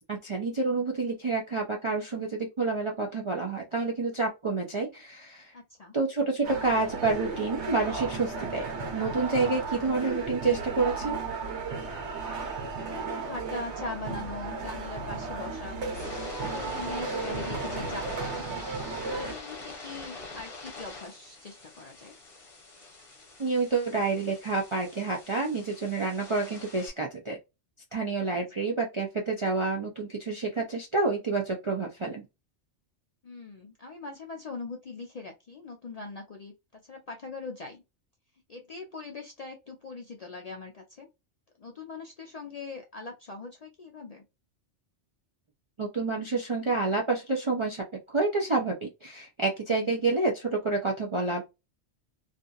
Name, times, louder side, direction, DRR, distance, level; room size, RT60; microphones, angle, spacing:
voice 1, 0.1-5.5 5.9-8.7 8.9-11.2 23.4-27.4 27.9-32.2 45.8-51.4, right 3 dB, 50° right, -1 dB, 0.3 m, -28 dB
voice 2, 5.5-6.0 12.6-18.5 19.0-22.1 28.6-28.7 33.2-37.8 38.5-41.1 41.6-44.2 49.7-49.9, left 3 dB, 55° left, 2 dB, 0.4 m, -41 dB
sound 1, 6.4-19.3, right 4 dB, 75° right, 1.1 m, -35 dB
sound 2, 15.8-26.9, left 3 dB, 30° left, 0.9 m, -43 dB
2.7 x 2.5 x 2.3 m, 0.24 s
omnidirectional pair, 1.2 m